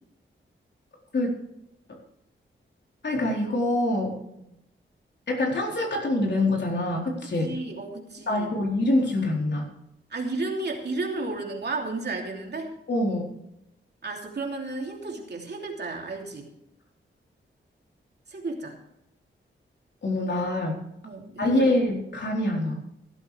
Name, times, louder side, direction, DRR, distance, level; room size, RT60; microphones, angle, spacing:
voice 1, 3.0-4.1 5.3-7.5 8.3-9.7 12.9-13.3 20.0-20.8 21.4-22.8, left 1 dB, 60° left, -1 dB, 4.0 m, -25 dB
voice 2, 7.2-8.5 10.1-12.7 14.0-16.5 18.3-18.8 21.0-21.7, right 3 dB, 55° right, 0 dB, 2.9 m, -33 dB
16.0 x 13.0 x 3.4 m, 0.83 s
wide cardioid pair, 135°, 21 cm